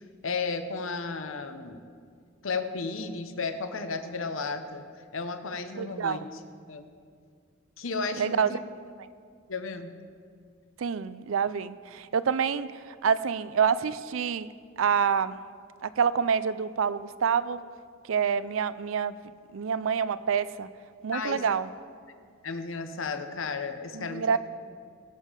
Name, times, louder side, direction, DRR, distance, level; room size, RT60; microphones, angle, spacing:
voice 1, 0.2-1.8 2.4-4.8 5.1-6.4 6.7-6.9 7.8-8.6 9.5-9.9 21.1-21.4 22.4-24.4, left 4 dB, 80° left, 8 dB, 0.9 m, -33 dB
voice 2, 5.8-6.2 8.2-8.6 10.8-14.5 14.8-15.4 15.8-17.6 18.0-19.2 19.5-20.7 21.0-21.7 23.9-24.4, right 6 dB, 80° right, 15 dB, 0.5 m, -27 dB
21.0 x 7.4 x 5.1 m, 2.2 s
head